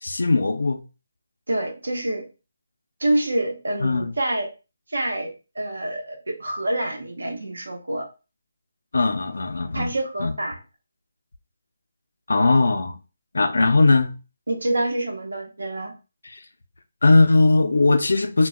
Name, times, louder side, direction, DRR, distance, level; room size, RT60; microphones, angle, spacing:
voice 1, 0.0-0.8 3.8-4.1 8.9-9.9 10.2-10.3 12.3-13.0 13.3-14.1 17.0-18.5, left 3 dB, 75° left, 0.4 m, -19 dB
voice 2, 1.5-2.2 3.0-4.5 4.9-8.1 9.7-10.6 14.5-15.9, right 1 dB, 85° right, 0.8 m, -26 dB
2.2 x 2.2 x 3.5 m
figure-of-eight pair, 160°, 0 cm